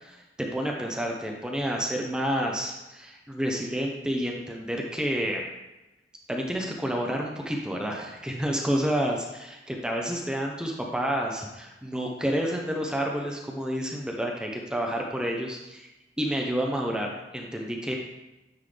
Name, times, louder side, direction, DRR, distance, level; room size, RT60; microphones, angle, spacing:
voice 1, 0.0-5.5 6.3-15.9 16.2-18.0, equal, 5° right, 0 dB, 0.6 m, -29 dB
9.5 x 3.7 x 3.3 m, 1.0 s
head